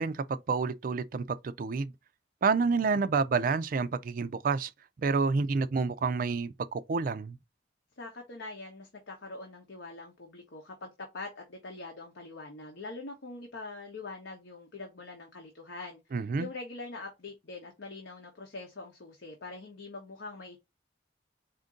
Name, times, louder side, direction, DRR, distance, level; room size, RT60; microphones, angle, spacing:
voice 1, 0.0-1.9 2.4-4.7 5.0-7.4 16.1-16.5, right 4 dB, 50° right, 0.4 m, -29 dB
voice 2, 8.0-16.0 16.4-20.6, left 3 dB, 85° left, 1.0 m, -43 dB
4.3 x 2.6 x 3.7 m
head